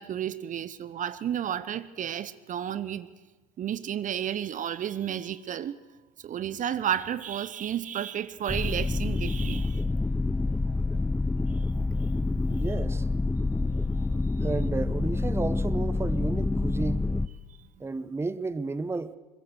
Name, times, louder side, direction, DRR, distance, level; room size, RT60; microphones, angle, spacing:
voice 1, 0.0-3.1 3.6-5.7 6.2-9.8 11.6-11.7, right 10 dB, 40° right, 0.9 m, -32 dB
sound 1, 8.5-17.3, left 3 dB, 5° left, 0.7 m, -27 dB
voice 2, 12.5-13.1 14.4-17.1 17.8-19.1, right 3 dB, 15° right, 0.9 m, -32 dB
22.5 x 20.5 x 6.4 m
hypercardioid pair, 70°, 20 cm